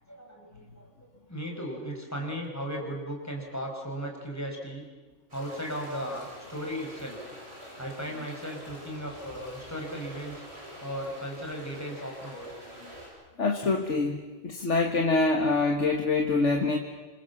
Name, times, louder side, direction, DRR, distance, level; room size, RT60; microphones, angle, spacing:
voice 1, 0.1-0.9 1.3-4.9 5.3-7.2 7.8-10.4 10.8-12.5, equal, 15° left, 0 dB, 5.8 m, -36 dB
sound 1, 5.3-13.1, equal, 60° right, 8.5 m, -46 dB
voice 2, 13.4-14.2 14.4-16.8, left 3 dB, 80° left, 3 dB, 2.0 m, -25 dB
27.0 x 25.5 x 7.3 m, 1.3 s
omnidirectional pair, 1.2 m